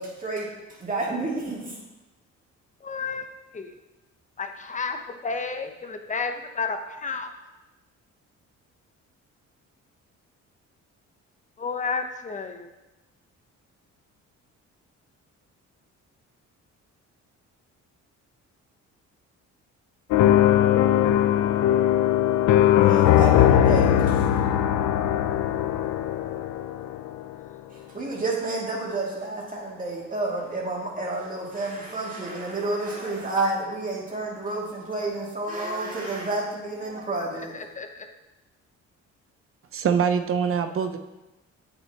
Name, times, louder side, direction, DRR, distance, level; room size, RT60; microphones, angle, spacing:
voice 1, 0.0-1.8 22.8-24.2 27.7-37.6, right 2 dB, 25° right, -4 dB, 2.3 m, -30 dB
voice 2, 2.8-3.2 3.5-3.7 4.4-7.3 11.6-12.7 23.6-23.7 37.5-38.1, left 4 dB, 25° left, 6 dB, 0.8 m, -31 dB
sound 1, 20.1-27.2, left 11 dB, 75° left, 0.5 m, -20 dB
voice 3, 39.7-41.0, right 7 dB, 45° right, 8 dB, 0.7 m, -24 dB
8.4 x 6.1 x 2.9 m, 1.0 s
cardioid pair, 90°, 30 cm